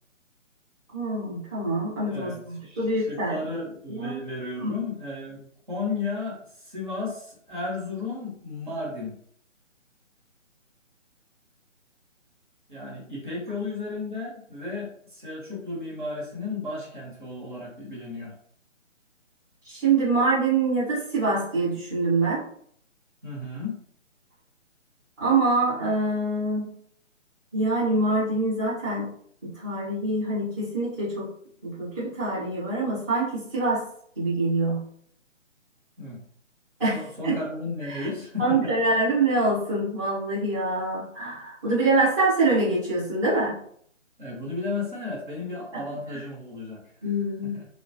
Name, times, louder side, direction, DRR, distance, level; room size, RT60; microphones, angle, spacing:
voice 1, 0.9-3.4 3.9-4.2 4.6-4.7 19.6-22.4 25.2-26.7 27.5-29.1 29.4-31.3 31.6-33.8 34.2-34.8 36.8-37.4 37.9-38.1 38.4-43.6 46.1-46.2 47.0-47.6, right 2 dB, 15° right, -12 dB, 1.0 m, -25 dB
voice 2, 2.1-5.4 5.7-9.1 12.7-18.3 23.2-23.8 36.0-36.2 36.9-38.7 44.2-47.1 47.4-47.7, left 3 dB, 40° right, -4 dB, 1.1 m, -34 dB
3.3 x 2.2 x 2.9 m, 0.62 s
hypercardioid pair, 175°, 38 cm